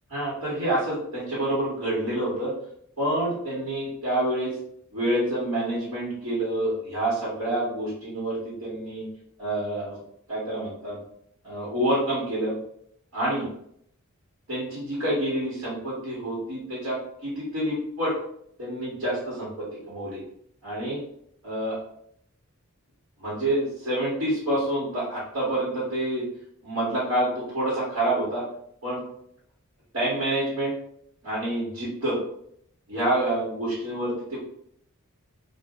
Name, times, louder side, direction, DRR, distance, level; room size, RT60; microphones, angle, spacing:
voice 1, 0.1-2.5 3.0-4.5 4.9-9.0 9.4-10.0 10.3-11.0 11.4-12.5 13.1-13.5 14.5-18.2 18.6-20.2 20.6-21.0 21.4-21.7 23.2-26.3 26.6-28.4 28.8-29.0 29.9-30.7 31.2-32.2 32.9-34.5, right 1 dB, 80° right, -8 dB, 1.3 m, -27 dB
2.4 x 2.0 x 3.5 m, 0.69 s
head